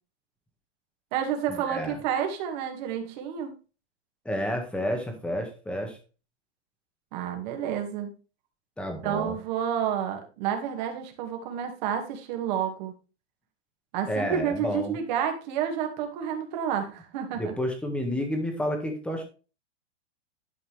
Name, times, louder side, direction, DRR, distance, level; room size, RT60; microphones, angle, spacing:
voice 1, 1.1-3.5 7.1-8.1 9.0-12.9 13.9-17.5, right 8 dB, 40° right, 4 dB, 2.3 m, -30 dB
voice 2, 1.7-2.0 4.2-6.0 8.8-9.4 14.1-15.0 17.4-19.2, equal, 5° left, 4 dB, 1.7 m, -30 dB
11.5 x 5.5 x 3.5 m, 0.33 s
hypercardioid pair, 155°, 33 cm